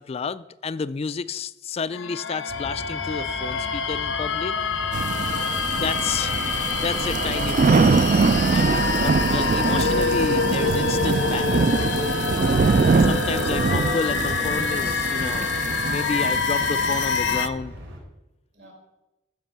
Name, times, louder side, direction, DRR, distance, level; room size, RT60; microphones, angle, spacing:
voice 1, 0.0-4.5 5.8-11.9 13.0-17.7, left 5 dB, 35° left, 15 dB, 0.3 m, -31 dB
sound 1, 1.9-17.5, left 5 dB, 90° left, 0.9 m, -26 dB
sound 2, 2.5-18.0, equal, 85° right, 3.7 m, -40 dB
sound 3, 4.9-17.5, right 4 dB, 45° right, 0.4 m, -23 dB
voice 2, 5.1-5.7 18.5-18.7, right 1 dB, 65° right, 0 dB, 4.8 m, -50 dB
13.0 x 5.3 x 7.4 m, 0.99 s
head